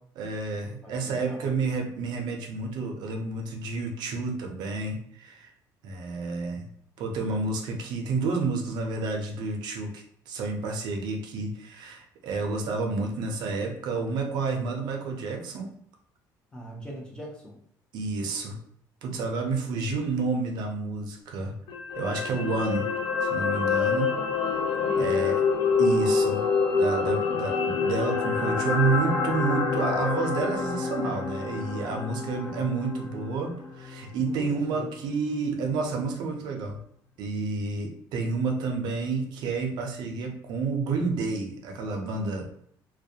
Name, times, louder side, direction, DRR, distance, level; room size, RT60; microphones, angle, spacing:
voice 1, 0.2-5.5 5.8-6.7 7.0-15.7 17.9-18.6 19.0-21.6 22.0-22.9 23.2-24.7 25.0-25.4 25.8-26.5 26.7-36.8 37.2-42.4, right 4 dB, 65° right, 2 dB, 0.5 m, -30 dB
voice 2, 0.8-1.5 16.5-17.6 24.8-25.4 27.0-27.6 32.2-32.8 34.2-34.9, equal, 10° left, -2 dB, 0.6 m, -41 dB
sound 1, 21.7-34.0 34.3-34.5, left 5 dB, 75° left, 0.4 m, -27 dB
2.3 x 2.1 x 2.7 m, 0.67 s
cardioid pair, 150°, 8 cm